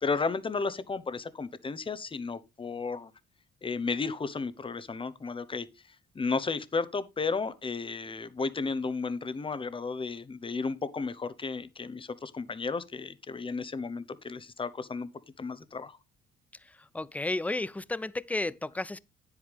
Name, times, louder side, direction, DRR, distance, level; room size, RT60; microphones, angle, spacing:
voice 1, 0.0-3.1 3.6-5.7 6.1-15.1 15.4-16.0, left 4 dB, 25° left, 0.9 m, -33 dB
voice 2, 16.9-19.0, left 2 dB, 5° left, 0.5 m, -32 dB
9.4 x 8.1 x 3.4 m
cardioid pair, 90°, 20 cm